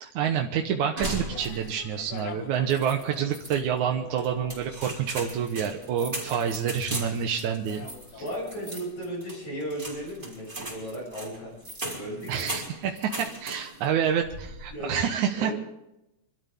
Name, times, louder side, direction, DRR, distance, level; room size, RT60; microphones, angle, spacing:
voice 1, 0.0-7.9 12.3-15.5, right 8 dB, 75° right, 2 dB, 2.5 m, -28 dB
sound 1, 1.0-1.9 2.2-2.3 2.7-3.6 4.2-13.9 14.2-14.7, right 1 dB, 15° right, 4.1 m, -38 dB
sound 2, 1.3-9.0, left 5 dB, 80° left, 0.8 m, -46 dB
voice 2, 8.2-11.5 11.9-12.5 14.7-15.5, equal, 50° left, -3 dB, 7.8 m, -35 dB
27.0 x 13.0 x 3.6 m, 0.90 s
omnidirectional pair, 3.6 m